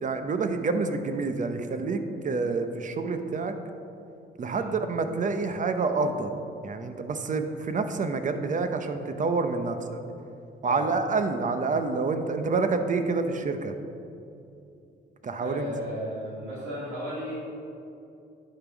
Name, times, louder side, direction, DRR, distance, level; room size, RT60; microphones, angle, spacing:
voice 1, 0.0-3.5 4.4-6.4 6.6-10.0 10.6-13.7 15.2-15.7, right 4 dB, 40° right, 8 dB, 0.7 m, -28 dB
voice 2, 15.4-17.3, equal, 90° right, -9 dB, 1.9 m, -35 dB
10.0 x 3.8 x 6.0 m, 2.7 s
cardioid pair, 90°, 20 cm